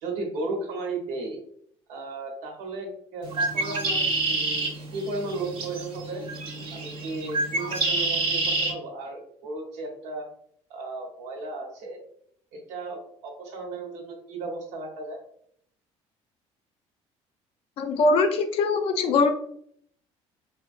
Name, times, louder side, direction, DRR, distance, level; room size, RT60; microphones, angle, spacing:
voice 1, 0.0-1.4 1.9-6.2 6.7-10.3 10.7-12.0 12.5-15.2, right 2 dB, 80° right, 1 dB, 1.0 m, -35 dB
Bird, 3.2-8.7, right 2 dB, 45° right, 0.8 m, -28 dB
voice 2, 17.8-19.3, left 3 dB, 55° left, 6 dB, 0.5 m, -22 dB
4.2 x 2.2 x 2.5 m, 0.66 s
cardioid pair, 170°, 12 cm